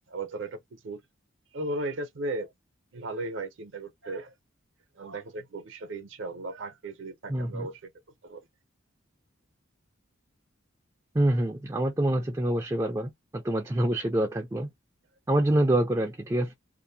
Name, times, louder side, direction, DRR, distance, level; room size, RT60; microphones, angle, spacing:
voice 1, 0.1-1.0 1.5-2.5 2.9-4.3 5.0-7.9 8.2-8.4, right 2 dB, 65° right, 0.6 m, -36 dB
voice 2, 7.3-7.7 11.1-14.7 15.3-16.5, right 1 dB, 15° right, 0.3 m, -26 dB
2.5 x 2.0 x 2.6 m
head